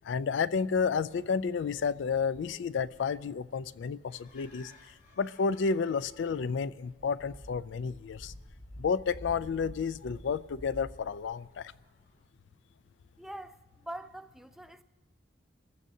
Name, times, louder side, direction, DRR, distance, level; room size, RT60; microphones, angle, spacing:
voice 1, 0.0-4.7 5.2-8.3 8.8-11.7, left 5 dB, 90° left, 0.4 m, -31 dB
sound 1, 0.8-12.2, equal, 55° left, 5.8 m, -52 dB
voice 2, 13.2-14.8, right 1 dB, ahead, 0.4 m, -44 dB
25.0 x 15.0 x 2.7 m
head